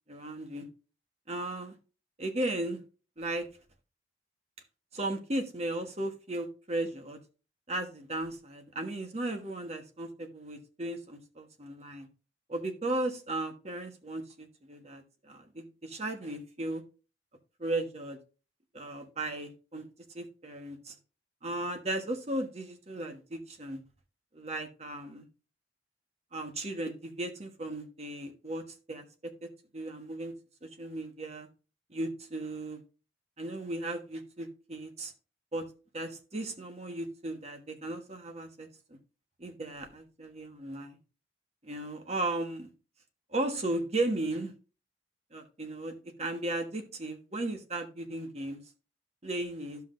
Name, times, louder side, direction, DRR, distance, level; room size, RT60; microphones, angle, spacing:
voice 1, 0.1-0.7 1.3-1.8 2.2-2.8 3.2-3.5 4.9-7.2 7.7-12.1 12.5-16.8 17.6-18.2 18.7-19.8 20.1-20.9 21.4-23.8 24.3-25.2 26.3-30.3 30.6-31.5 31.9-32.8 33.4-35.1 35.5-35.6 35.9-38.7 39.4-41.0 41.6-42.7 43.3-44.5 45.3-48.6 49.2-49.8, right 2 dB, 35° right, 5 dB, 1.3 m, -36 dB
12.5 x 5.8 x 2.6 m, 0.33 s
head